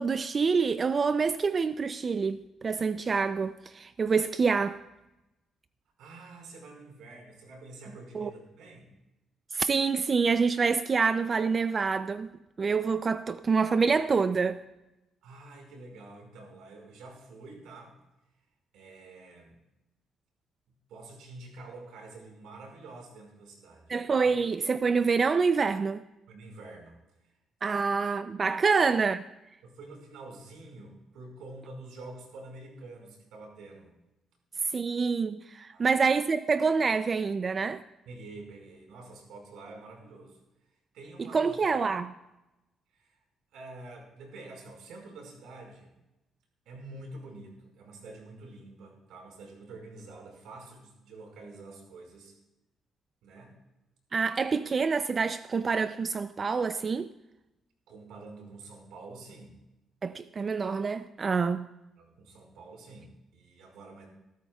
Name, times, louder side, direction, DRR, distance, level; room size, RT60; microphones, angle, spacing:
voice 1, 0.0-4.8 8.1-8.3 9.5-12.3 12.6-14.6 23.9-26.0 27.6-29.2 34.7-37.8 41.3-42.1 54.1-57.1 60.0-61.7, right 5 dB, 40° right, 0.5 m, -27 dB
voice 2, 6.0-8.9 15.2-18.0 18.7-19.6 20.9-23.9 26.3-27.0 27.2-27.3 27.7-27.8 28.6-28.9 29.6-33.9 35.7-36.0 38.0-40.4 40.9-41.6 42.9-43.2 43.5-45.9 46.6-52.4 53.2-53.6 57.9-59.6 62.0-64.1, right 2 dB, 85° right, 5.0 m, -47 dB
22.5 x 13.5 x 2.4 m
cardioid pair, 90°, 0 cm